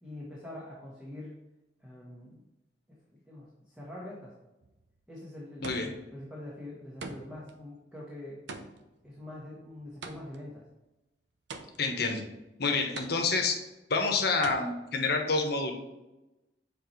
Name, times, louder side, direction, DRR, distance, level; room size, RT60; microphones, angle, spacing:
voice 1, 0.0-1.4 1.8-2.4 3.1-4.4 5.1-8.4 9.0-10.7, left 1 dB, 5° right, -6 dB, 1.3 m, -44 dB
sound 1, 4.6-5.0 5.6-6.2 7.0-7.5 8.5-10.5 11.5-12.1 13.0-13.6 14.4-14.5, right 3 dB, 80° right, 0.7 m, -43 dB
voice 2, 11.8-12.2 12.6-13.6 13.9-15.7, left 4 dB, 65° left, 3 dB, 1.1 m, -28 dB
7.3 x 4.3 x 3.2 m, 1.0 s
head